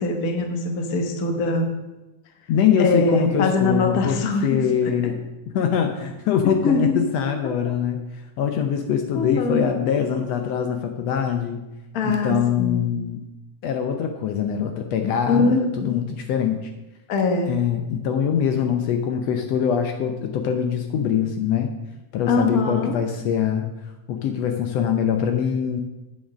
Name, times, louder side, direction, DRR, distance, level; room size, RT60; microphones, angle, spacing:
voice 1, 0.0-1.7 2.8-4.9 6.4-7.1 7.4-7.5 9.1-9.7 11.9-12.9 15.3-16.0 17.1-17.5 22.3-23.0, left 3 dB, 55° left, 3 dB, 1.0 m, -23 dB
voice 2, 2.5-5.2 5.5-11.6 12.0-13.2 13.6-16.7 17.5-21.7 22.1-23.7 24.1-25.8, left 8 dB, 75° left, 5 dB, 1.6 m, -23 dB
9.5 x 6.5 x 6.1 m, 1.0 s
omnidirectional pair, 3.4 m